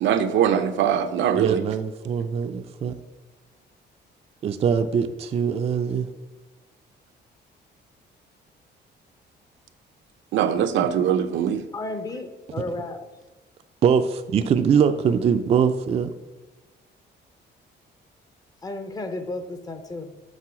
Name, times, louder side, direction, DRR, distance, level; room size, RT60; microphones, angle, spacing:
voice 1, 0.0-1.6 10.3-11.6, right 9 dB, 85° right, 9 dB, 0.6 m, -22 dB
voice 2, 1.3-2.9 4.4-6.1 13.8-16.1, right 7 dB, 35° right, 8 dB, 0.3 m, -22 dB
voice 3, 11.7-13.1 18.6-20.1, left 2 dB, 20° left, 8 dB, 0.5 m, -33 dB
7.3 x 3.8 x 6.1 m, 1.2 s
cardioid pair, 170°, 19 cm